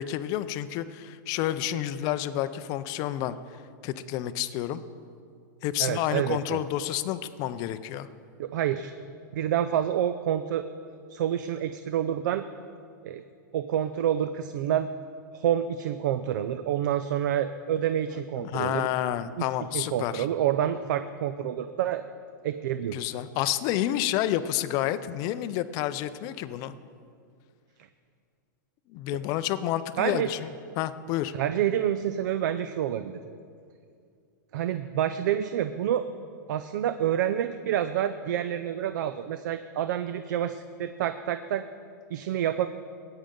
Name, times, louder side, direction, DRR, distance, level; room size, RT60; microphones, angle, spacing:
voice 1, 0.0-3.4 3.8-4.8 5.6-8.1 18.4-20.3 22.9-26.7 28.9-30.5 30.8-31.3, left 12 dB, 35° left, 13 dB, 0.4 m, -29 dB
voice 2, 5.8-6.6 8.4-8.9 9.3-10.7 11.1-12.4 13.0-13.2 13.5-14.9 15.3-18.9 19.4-19.5 19.7-22.0 22.4-23.1 30.0-30.3 31.3-33.1 34.5-36.0 36.5-41.6 42.1-42.7, right 10 dB, 65° right, 10 dB, 0.5 m, -28 dB
16.0 x 8.9 x 3.8 m, 2.3 s
hypercardioid pair, 145°, 11 cm